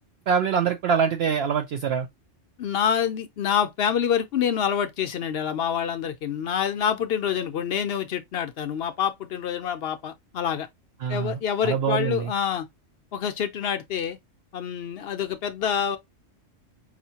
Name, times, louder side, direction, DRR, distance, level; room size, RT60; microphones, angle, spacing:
voice 1, 0.3-2.1 11.0-12.3, right 7 dB, 65° right, 0.7 m, -24 dB
voice 2, 2.6-10.7 11.1-12.7 13.1-14.2 14.5-16.0, left 8 dB, 60° left, 0.7 m, -27 dB
4.9 x 2.6 x 2.7 m
omnidirectional pair, 1.3 m